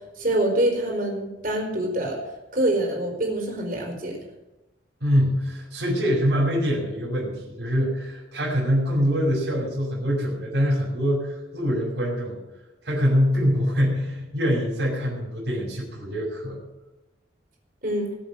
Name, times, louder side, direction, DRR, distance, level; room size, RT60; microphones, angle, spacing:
voice 1, 0.2-2.2 2.5-4.2 17.8-18.1, right 1 dB, 50° right, 1 dB, 4.4 m, -25 dB
voice 2, 5.0-12.4 12.8-16.6, equal, 75° right, -5 dB, 5.6 m, -24 dB
20.0 x 7.9 x 7.5 m, 1.0 s
head